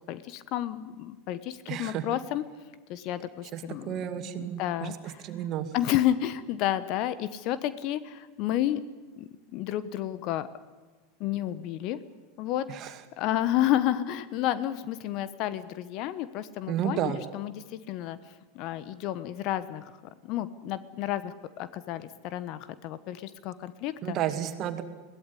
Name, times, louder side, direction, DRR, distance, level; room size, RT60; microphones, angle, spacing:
voice 1, 0.1-2.4 2.9-5.2 5.7-8.8 9.2-10.5 11.2-12.0 12.4-19.9 20.2-24.2, left 12 dB, 50° left, 15 dB, 1.1 m, -31 dB
voice 2, 1.7-2.0 3.5-5.7 12.7-13.0 16.7-17.2 24.0-24.8, right 10 dB, 45° right, 9 dB, 2.3 m, -32 dB
22.0 x 17.0 x 9.9 m, 1.3 s
hypercardioid pair, 85°, 0 cm